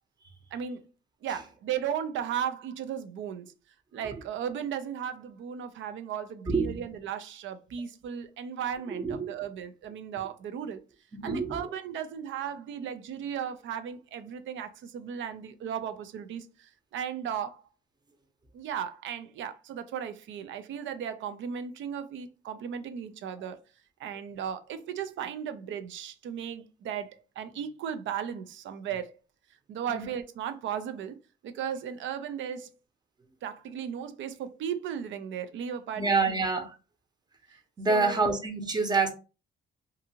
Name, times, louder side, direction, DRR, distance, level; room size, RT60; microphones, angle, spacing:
voice 1, 0.5-0.8 1.2-3.5 3.9-10.8 11.2-17.6 18.5-23.6 24.0-29.1 29.7-31.2 31.4-32.7 33.4-36.4 37.9-38.3, right 8 dB, 75° right, 0.5 m, -36 dB
voice 2, 6.5-6.8 8.9-9.3 11.2-11.7 29.9-30.0 36.0-36.8 37.8-39.1, right 4 dB, 20° right, 0.7 m, -27 dB
2.6 x 2.5 x 2.8 m
cardioid pair, 90°, 20 cm